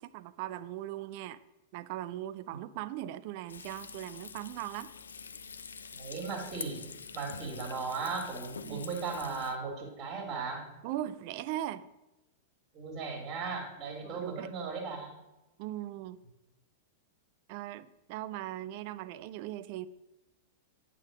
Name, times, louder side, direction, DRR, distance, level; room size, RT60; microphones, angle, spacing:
voice 1, 0.0-1.4 1.7-4.9 8.6-8.9 10.8-11.9 14.0-14.5 15.6-16.2 17.5-19.9, right 13 dB, 50° right, 14 dB, 0.4 m, -39 dB
Frying (food), 3.5-9.5, left 6 dB, 75° left, 0.4 m, -46 dB
voice 2, 6.0-6.8 7.1-10.7 12.7-15.2, right 4 dB, 30° right, 1 dB, 2.1 m, -37 dB
8.8 x 3.8 x 6.1 m, 0.96 s
figure-of-eight pair, 95°, 0 cm